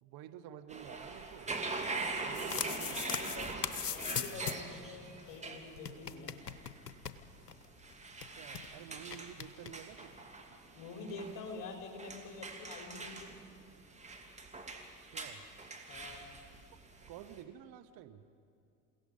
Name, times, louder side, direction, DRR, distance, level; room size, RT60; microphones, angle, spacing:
voice 1, 0.0-1.6 2.2-3.4 8.2-10.1 15.0-15.5 17.1-18.2, right 10 dB, 50° right, 10 dB, 1.2 m, -50 dB
sound 1, 0.7-17.4, right 3 dB, 15° right, 2.6 m, -43 dB
sound 2, 2.1-4.8 5.0-5.1 5.3-5.4 5.8-7.6 7.9-8.0 8.2-8.7 9.1-9.7, left 7 dB, 90° left, 1.0 m, -39 dB
voice 2, 2.5-3.5 3.8-6.4 10.7-13.4 15.9-16.2, left 3 dB, 45° left, 2 dB, 4.5 m, -47 dB
28.5 x 17.0 x 5.5 m, 2.6 s
hypercardioid pair, 80°, 47 cm